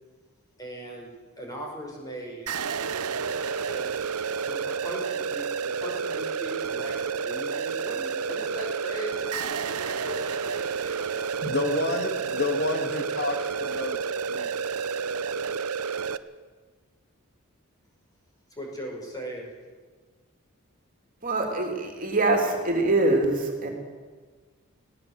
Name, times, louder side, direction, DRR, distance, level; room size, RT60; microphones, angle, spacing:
voice 1, 0.6-1.1 1.4-2.5 3.7-3.9 4.4-5.4 5.8-11.1 18.6-19.5, equal, 15° left, 0 dB, 5.4 m, -39 dB
sound 1, 2.5-16.2, right 6 dB, 90° right, 0.8 m, -30 dB
voice 2, 11.4-14.9, left 2 dB, 50° left, 4 dB, 1.9 m, -30 dB
voice 3, 21.2-23.7, right 2 dB, 40° right, 2 dB, 3.2 m, -24 dB
19.5 x 17.5 x 8.1 m, 1.4 s
head